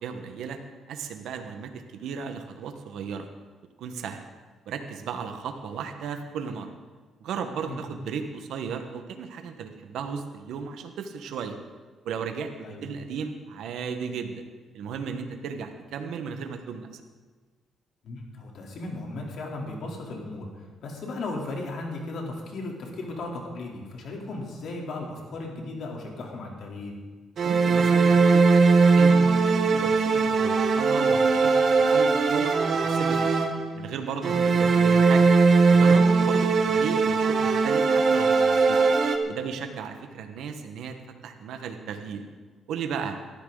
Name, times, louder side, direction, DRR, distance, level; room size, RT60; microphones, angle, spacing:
voice 1, 0.0-0.6 0.9-3.3 3.8-4.3 4.7-6.7 7.2-11.5 12.0-14.4 14.7-17.0 27.4-28.6 28.9-33.3 33.7-35.3 35.7-38.8 39.3-40.9 41.2-42.2 42.7-43.2, right 6 dB, 80° right, 6 dB, 1.3 m, -35 dB
voice 2, 18.0-20.5 20.8-26.9 34.3-34.5, left 2 dB, 65° left, 0 dB, 3.4 m, -36 dB
sound 1, 27.4-33.8 34.2-39.2, right 4 dB, 55° right, 1.5 m, -20 dB
18.0 x 13.5 x 4.0 m, 1.4 s
cardioid pair, 90°, 0 cm